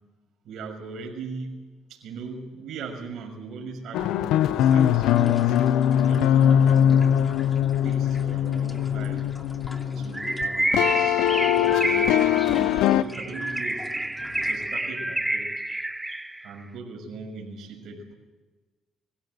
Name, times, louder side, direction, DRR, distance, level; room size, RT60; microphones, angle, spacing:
voice 1, 0.4-1.6 1.9-5.6 5.9-7.4 7.8-9.3 9.9-13.9 14.3-15.5 16.4-18.1, right 4 dB, 70° right, 2 dB, 6.6 m, -39 dB
sound 1, 3.9-10.5 10.7-13.0, left 10 dB, 85° left, 0.7 m, -21 dB
sound 2, 4.4-14.8, left 2 dB, 20° left, 2.7 m, -42 dB
Bird, 10.1-16.5, right 1 dB, 10° right, 1.0 m, -28 dB
24.0 x 16.5 x 8.0 m, 1.2 s
cardioid pair, 90°, 0 cm